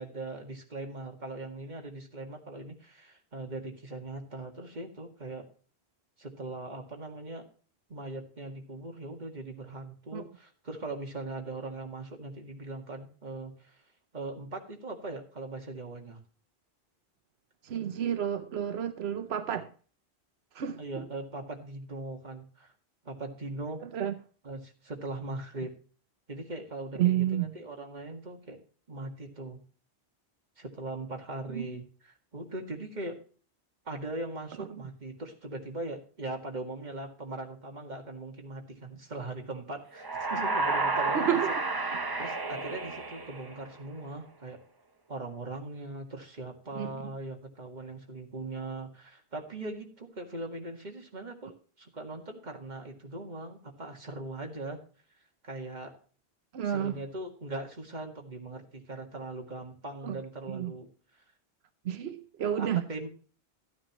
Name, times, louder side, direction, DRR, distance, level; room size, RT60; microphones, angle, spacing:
voice 1, 0.0-5.5 6.2-7.4 7.9-13.8 14.1-16.2 20.8-22.7 23.0-23.8 24.4-25.7 26.3-28.6 28.9-29.6 30.6-33.2 33.9-41.4 42.0-44.6 45.1-54.8 55.4-56.0 56.6-60.9 61.1-61.2 62.5-63.1, right 2 dB, 45° right, 2.1 m, -40 dB
voice 2, 17.6-19.7 20.5-21.1 23.8-24.1 27.0-27.5 31.5-31.8 34.6-34.7 41.1-41.5 46.7-47.0 56.5-56.9 60.0-60.2 60.5-60.7 61.8-62.8, right 10 dB, 90° right, 1.0 m, -30 dB
sound 1, 40.0-43.8, right 3 dB, 25° right, 0.8 m, -31 dB
13.5 x 9.5 x 3.0 m
omnidirectional pair, 1.0 m